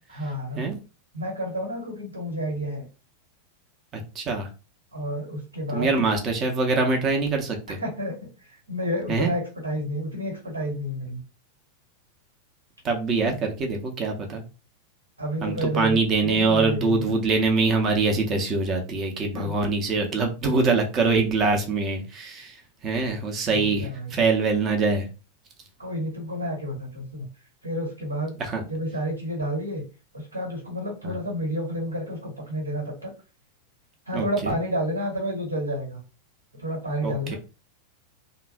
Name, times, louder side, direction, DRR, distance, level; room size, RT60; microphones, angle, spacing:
voice 1, 0.1-0.6 1.1-2.9 4.9-6.0 7.8-11.2 15.2-17.2 19.3-19.6 23.5-24.1 25.8-27.3 27.6-28.4 28.7-29.8 30.1-33.1 34.1-36.0 36.5-37.4, equal, 75° right, 0 dB, 1.2 m, -30 dB
voice 2, 3.9-4.5 5.7-7.8 9.1-9.3 12.8-14.4 15.4-22.6 22.8-25.1 28.4-28.6 31.0-31.2 34.1-34.3 37.0-37.4, right 3 dB, 30° right, 3 dB, 0.7 m, -24 dB
3.0 x 2.0 x 2.4 m, 0.32 s
figure-of-eight pair, 90°, 0 cm